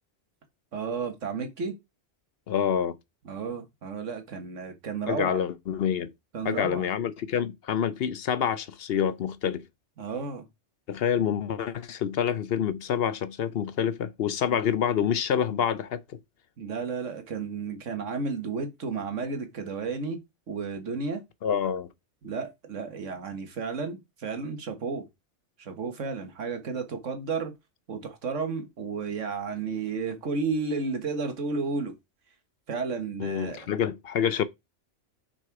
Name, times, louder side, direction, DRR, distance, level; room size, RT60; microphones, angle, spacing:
voice 1, 0.7-1.8 3.3-5.4 6.3-6.9 10.0-10.4 14.5-14.6 16.6-20.2 20.5-21.2 22.2-25.1 25.6-27.5 27.9-31.9 32.7-33.7, right 4 dB, 85° right, 1.7 m, -32 dB
voice 2, 2.5-3.0 5.1-6.1 6.4-9.6 10.9-16.0 21.4-21.9 33.2-34.4, left 8 dB, 60° left, 0.8 m, -27 dB
6.3 x 4.2 x 4.6 m
omnidirectional pair, 1.2 m